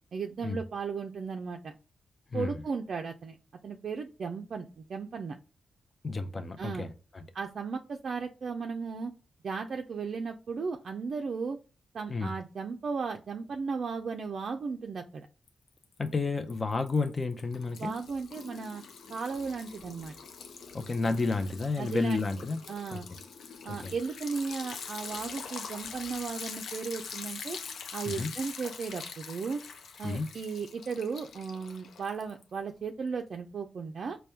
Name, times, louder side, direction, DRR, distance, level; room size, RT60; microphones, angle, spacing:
voice 1, 0.1-1.7 2.3-3.4 3.6-5.4 6.6-6.9 7.3-9.1 9.4-11.6 11.9-15.3 17.8-18.8 19.1-20.1 21.8-22.2 22.7-23.1 23.7-27.6 27.9-29.6 30.0-34.2, right 5 dB, 65° right, 0.4 m, -35 dB
voice 2, 2.3-2.6 6.0-7.2 12.1-12.3 16.0-17.9 20.7-22.6 22.9-23.0 23.7-23.9 28.1-28.3 30.0-30.3, left 3 dB, 40° left, 0.6 m, -31 dB
Liquid, 15.5-16.1 16.4-32.6, left 5 dB, 80° left, 0.5 m, -44 dB
4.2 x 2.2 x 3.3 m
cardioid pair, 65°, 0 cm